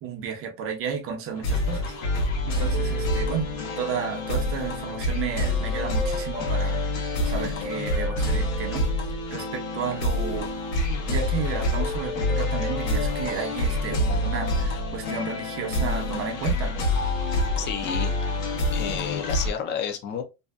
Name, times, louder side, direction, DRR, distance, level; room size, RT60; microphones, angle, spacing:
voice 1, 0.0-2.0 2.5-3.5 3.8-8.9 9.3-10.5 11.1-16.7, right 7 dB, 35° right, 0.7 m, -32 dB
sound 1, 1.3-19.5, left 1 dB, 85° left, 0.9 m, -27 dB
voice 2, 17.6-18.4 18.7-20.2, left 8 dB, 30° left, 0.4 m, -31 dB
2.6 x 2.2 x 2.2 m
supercardioid pair, 125°, 39 cm